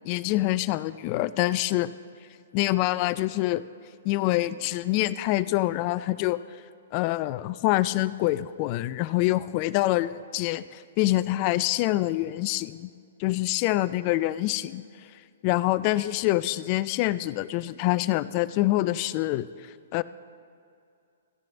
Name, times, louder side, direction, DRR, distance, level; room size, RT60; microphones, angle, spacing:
voice 1, 0.0-1.9 2.5-3.6 4.0-6.4 6.9-12.9 13.2-14.8 15.4-19.5 19.9-20.0, left 17 dB, 40° left, 16 dB, 0.3 m, -25 dB
16.5 x 10.5 x 2.6 m, 2.4 s
figure-of-eight pair, 120°, 0 cm